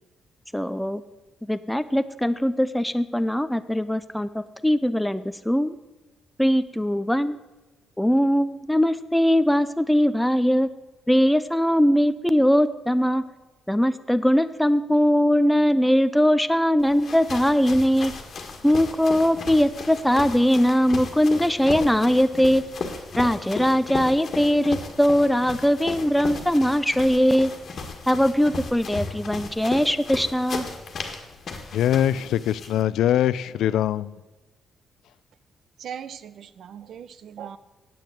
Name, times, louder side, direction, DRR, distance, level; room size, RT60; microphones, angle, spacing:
voice 1, 0.5-1.0 1.4-5.7 6.4-7.4 8.0-10.7 11.1-13.2 13.7-18.1 18.6-22.6 23.2-27.5 28.1-30.7, equal, ahead, 0.4 m, -21 dB
sound 1, 16.8-32.8, left 4 dB, 40° left, 1.6 m, -36 dB
voice 2, 31.7-34.2, left 11 dB, 90° left, 0.4 m, -22 dB
voice 3, 35.8-37.6, right 8 dB, 55° right, 0.6 m, -39 dB
9.1 x 8.7 x 8.0 m
cardioid pair, 170°, 0 cm